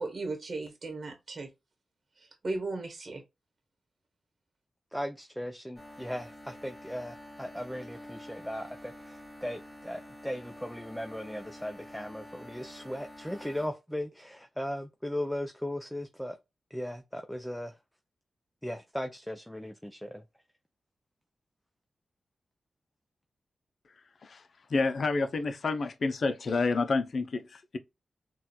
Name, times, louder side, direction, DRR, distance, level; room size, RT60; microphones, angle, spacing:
voice 1, 0.0-1.5 2.2-3.2, right 3 dB, 50° right, 1.0 m, -36 dB
voice 2, 4.9-16.4 16.7-17.7 18.6-20.2, equal, 5° left, 0.4 m, -37 dB
sound 1, 5.8-13.7, left 1 dB, 25° left, 1.7 m, -48 dB
voice 3, 24.2-27.8, left 3 dB, 65° left, 0.4 m, -29 dB
4.1 x 2.2 x 2.2 m
cardioid pair, 55°, 0 cm